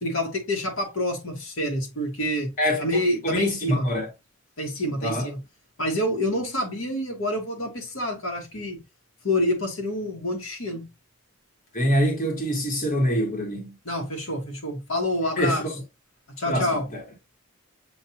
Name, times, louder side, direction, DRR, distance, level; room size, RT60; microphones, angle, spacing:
voice 1, 0.0-2.5 2.8-3.9 4.6-5.4 5.8-8.8 9.2-10.9 13.8-15.6 16.3-16.9, left 1 dB, 70° left, 1.3 m, -27 dB
voice 2, 2.6-4.1 5.0-5.3 11.7-13.7 15.4-15.7 16.4-17.0, equal, 35° left, 1.3 m, -25 dB
7.2 x 2.6 x 2.8 m
head